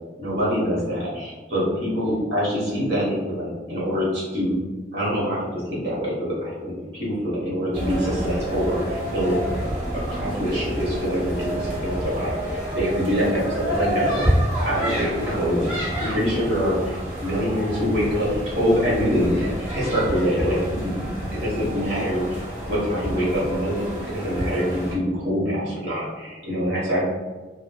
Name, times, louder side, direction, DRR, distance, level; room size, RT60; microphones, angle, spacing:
voice 1, 0.2-4.5 4.9-9.5 10.1-14.2 14.6-27.0, equal, 75° right, -6 dB, 1.1 m, -25 dB
sound 1, 7.7-24.9, right 1 dB, 40° right, 1.3 m, -28 dB
3.1 x 2.2 x 2.2 m, 1.3 s
head